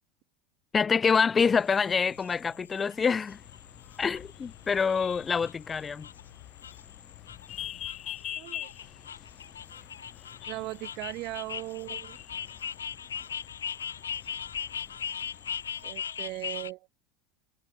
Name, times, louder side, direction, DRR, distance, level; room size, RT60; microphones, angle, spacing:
voice 1, 0.7-3.4 4.0-6.1, left 5 dB, 25° left, 1.8 m, -26 dB
sound 1, 1.4-16.7, left 8 dB, 90° left, 5.4 m, -40 dB
sound 2, 3.3-16.4, left 12 dB, 40° left, 4.1 m, -46 dB
voice 2, 8.4-8.7 10.5-12.2 15.8-16.9, right 21 dB, 55° right, 2.4 m, -38 dB
hypercardioid pair, 90°, 0 cm